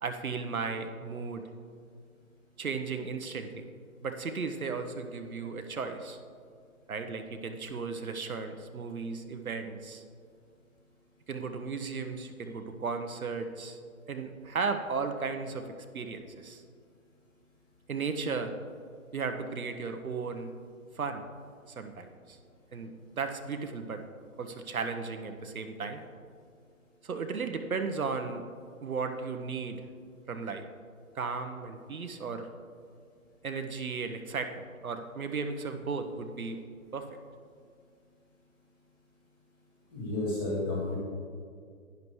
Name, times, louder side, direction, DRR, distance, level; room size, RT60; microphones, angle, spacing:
voice 1, 0.0-1.4 2.6-3.7 4.0-6.2 6.9-10.0 11.3-13.8 14.1-15.7 15.9-16.6 17.9-18.5 19.1-20.5 21.0-21.2 21.7-22.4 22.7-24.0 24.4-26.0 27.0-28.5 28.8-29.8 30.3-30.6 31.1-32.5 33.4-36.6 36.9-37.1, right 4 dB, 80° right, 6 dB, 1.0 m, -35 dB
voice 2, 39.9-41.0, left 2 dB, 15° left, -5 dB, 1.8 m, -31 dB
11.0 x 10.5 x 3.2 m, 2.2 s
hypercardioid pair, 165°, 42 cm